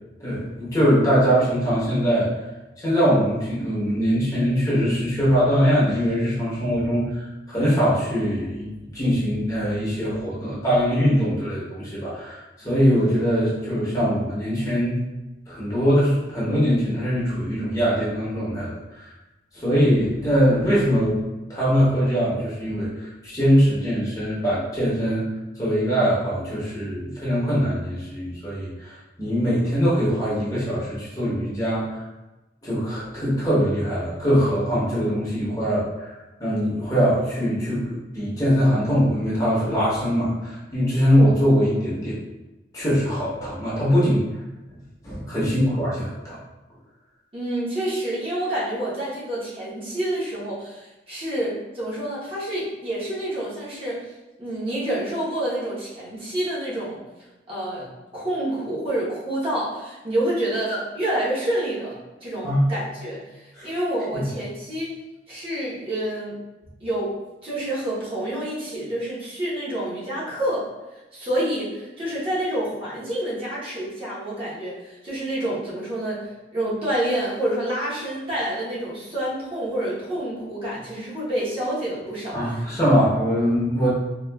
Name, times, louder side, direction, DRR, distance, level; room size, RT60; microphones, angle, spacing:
voice 1, 0.2-2.3 2.8-15.0 15.5-19.1 19.5-21.2 21.5-25.3 25.6-32.0 32.6-36.1 36.4-42.2 42.7-44.3 45.0-46.4 62.4-62.6 63.5-63.7 64.1-64.3 82.3-83.9, equal, 20° left, -8 dB, 0.8 m, -22 dB
voice 2, 47.3-54.1 54.4-57.0 57.5-64.9 65.3-66.4 66.8-67.1 67.4-70.7 71.1-82.6, right 1 dB, 30° right, -8 dB, 0.9 m, -28 dB
3.8 x 2.4 x 2.2 m, 1.1 s
head